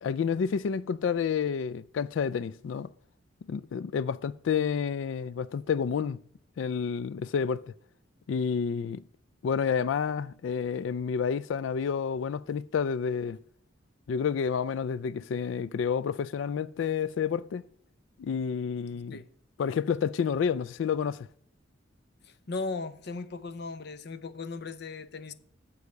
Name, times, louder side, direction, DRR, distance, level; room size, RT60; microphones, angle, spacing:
voice 1, 0.0-2.9 3.5-6.2 6.6-7.6 8.3-9.0 9.4-13.4 14.1-17.6 18.2-19.2 19.6-21.3, left 6 dB, 85° left, 0.3 m, -29 dB
voice 2, 22.2-25.3, left 3 dB, 60° left, 0.7 m, -37 dB
9.6 x 7.1 x 6.5 m
head